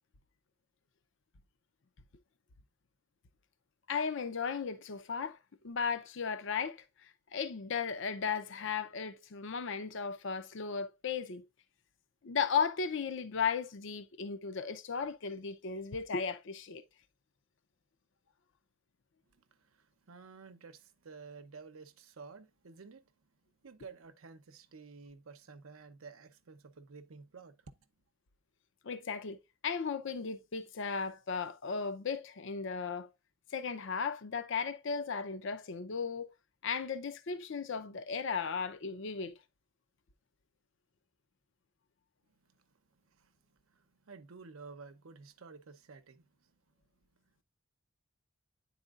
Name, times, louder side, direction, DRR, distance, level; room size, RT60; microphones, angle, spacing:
voice 1, 3.9-5.4 5.6-11.5 12.2-16.8 28.8-29.4 29.6-33.1 33.5-36.3 36.6-39.4, left 6 dB, 60° left, 0.6 m, -36 dB
voice 2, 19.3-23.1 23.6-27.8 42.5-46.5, right 4 dB, 85° right, 0.7 m, -52 dB
9.9 x 4.2 x 2.4 m
head